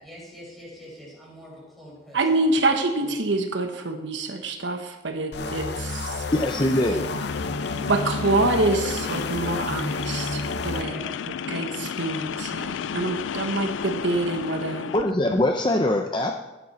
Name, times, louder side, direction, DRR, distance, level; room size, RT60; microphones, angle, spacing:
voice 1, 0.0-2.6 3.0-3.1 10.8-11.2, equal, ahead, -5 dB, 4.9 m, -44 dB
voice 2, 2.1-6.2 7.9-14.9, right 2 dB, 75° right, 5 dB, 1.2 m, -26 dB
sound 1, 5.3-10.8, left 3 dB, 60° left, 0.8 m, -31 dB
sound 2, 6.3-15.1, left 7 dB, 80° left, 0.4 m, -33 dB
voice 3, 6.3-7.0 14.9-16.3, left 1 dB, 25° left, 3 dB, 0.6 m, -22 dB
15.0 x 10.0 x 4.3 m, 1.1 s
head